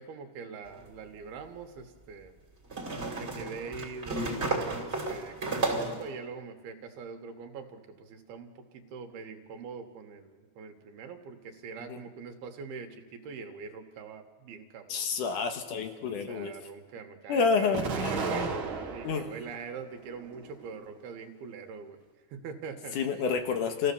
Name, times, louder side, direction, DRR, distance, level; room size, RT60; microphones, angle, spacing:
voice 1, 0.0-2.3 3.2-15.4 16.3-18.5 18.9-22.0 22.3-23.0, right 5 dB, 80° right, 5 dB, 3.3 m, -43 dB
sound 1, 0.7-0.8 2.7-6.1, right 2 dB, 20° right, 2.6 m, -32 dB
voice 2, 14.9-16.5 17.3-18.6 19.0-19.3 23.0-23.9, left 5 dB, 65° left, 6 dB, 2.5 m, -29 dB
Explosion, 17.7-19.4 19.9-20.8, right 5 dB, 50° right, 1.5 m, -34 dB
27.5 x 15.5 x 7.0 m, 1.4 s
omnidirectional pair, 4.4 m